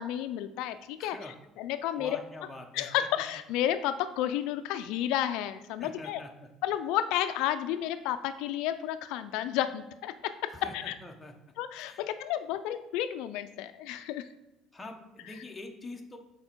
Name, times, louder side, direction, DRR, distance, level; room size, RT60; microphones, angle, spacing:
voice 1, 0.0-1.2 1.6-2.2 2.7-6.2 6.6-10.9 11.6-14.3, left 11 dB, 80° left, 11 dB, 0.4 m, -31 dB
voice 2, 1.0-1.3 1.9-2.9 5.8-6.5 10.5-11.3 11.7-12.0 14.7-16.2, left 2 dB, 10° left, 2 dB, 0.8 m, -45 dB
6.4 x 4.2 x 4.5 m, 0.98 s
cardioid pair, 130°, 0 cm